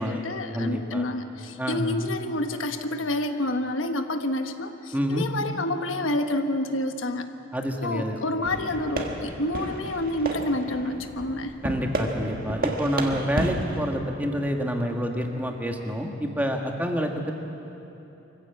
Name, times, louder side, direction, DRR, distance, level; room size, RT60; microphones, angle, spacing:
voice 1, 0.0-7.3 7.8-11.5, left 1 dB, 85° left, 7 dB, 1.2 m, -28 dB
voice 2, 0.5-1.0 1.6-2.0 4.9-5.3 7.5-8.2 11.6-17.3, equal, 10° right, 2 dB, 1.6 m, -28 dB
sound 1, 8.4-14.0, right 1 dB, 50° right, 1.7 m, -32 dB
24.0 x 15.5 x 8.2 m, 3.0 s
head